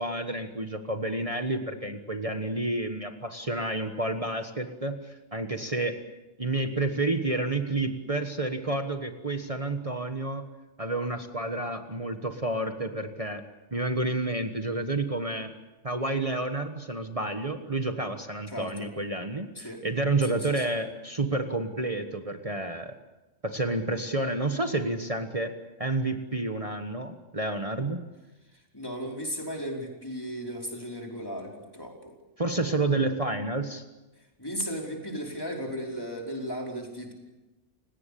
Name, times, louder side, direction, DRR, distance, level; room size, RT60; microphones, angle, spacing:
voice 1, 0.0-6.0 6.4-10.4 10.8-13.4 13.7-15.5 15.8-22.9 23.4-25.5 25.8-28.0 32.4-33.8, right 2 dB, 30° right, 6 dB, 1.4 m, -30 dB
voice 2, 18.5-18.9 19.5-19.8 20.3-20.6 28.7-32.1 32.5-32.8 34.4-37.1, equal, 20° left, 0 dB, 4.9 m, -36 dB
29.5 x 18.0 x 8.5 m, 1.1 s
omnidirectional pair, 1.2 m